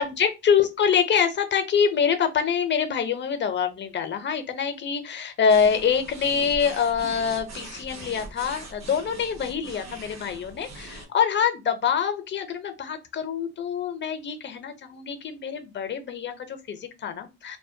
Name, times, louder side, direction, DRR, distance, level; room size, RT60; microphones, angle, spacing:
voice 1, 0.0-17.6, left 7 dB, 40° left, 0.5 m, -25 dB
sound 1, 5.5-11.1, right 2 dB, 60° right, 0.9 m, -41 dB
2.2 x 2.1 x 2.6 m
cardioid pair, 90°, 30 cm